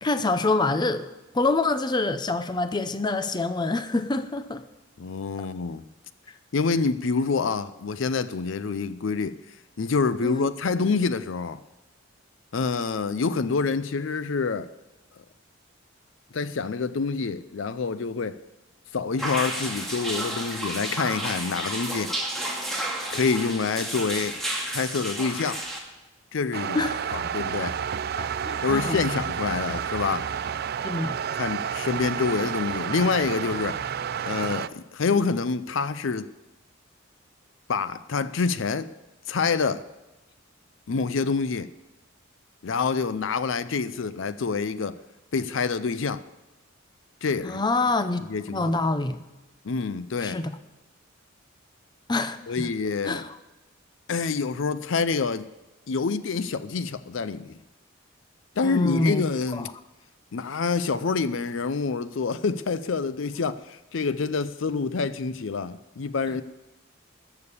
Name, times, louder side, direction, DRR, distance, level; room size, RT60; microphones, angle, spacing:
voice 1, 0.0-4.6 10.2-10.5 26.7-27.2 28.2-29.0 30.8-31.2 47.4-48.2 48.5-49.2 50.2-50.5 52.1-52.7 53.0-53.4 58.6-59.2 59.5-59.7, left 2 dB, 20° left, 0.6 m, -26 dB
voice 2, 5.0-5.8 6.5-9.4 9.8-11.6 12.5-14.7 16.3-18.4 18.9-22.1 23.1-24.3 24.7-25.6 26.3-26.8 27.1-27.8 28.6-30.3 31.3-33.8 34.3-36.3 37.7-38.9 39.3-39.8 40.9-41.7 42.6-45.0 45.3-46.2 47.2-47.6 48.3-48.7 49.6-50.4 52.5-53.2 54.1-55.5 55.9-57.6 58.6-59.7 60.3-66.4, left 4 dB, 65° left, 0.5 m, -27 dB
sound 1, 19.2-25.8, right 1 dB, ahead, 2.3 m, -31 dB
sound 2, 26.5-34.7, right 8 dB, 50° right, 0.4 m, -30 dB
13.5 x 6.9 x 8.3 m
head